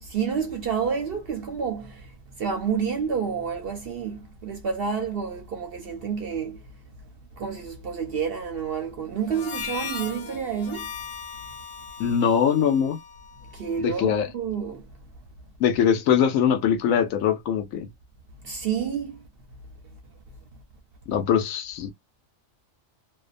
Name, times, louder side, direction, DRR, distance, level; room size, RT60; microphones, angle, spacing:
voice 1, 0.0-6.6 7.4-10.9 13.5-14.8 18.4-19.2, right 6 dB, 60° right, 0.6 m, -29 dB
Harmonica, 9.2-13.9, left 7 dB, 55° left, 0.7 m, -38 dB
voice 2, 12.0-13.0 13.8-14.3 15.6-17.9 21.1-21.9, left 8 dB, 80° left, 1.0 m, -22 dB
2.6 x 2.1 x 2.4 m
omnidirectional pair, 1.4 m